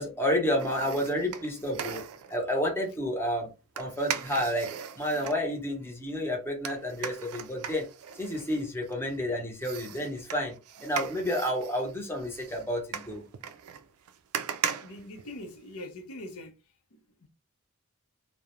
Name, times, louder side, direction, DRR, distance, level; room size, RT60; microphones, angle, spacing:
voice 1, 0.0-2.0 2.3-3.5 3.8-4.7 5.0-7.9 8.2-13.2, equal, 10° left, 0.7 m, -30 dB
sound 1, 0.6-2.4 3.8-5.4 6.6-9.2 9.6-15.8 16.2-16.3, right 8 dB, 85° right, 0.3 m, -38 dB
voice 2, 14.8-16.6 16.9-17.3, left 1 dB, 80° left, 0.6 m, -43 dB
2.4 x 2.1 x 2.9 m
head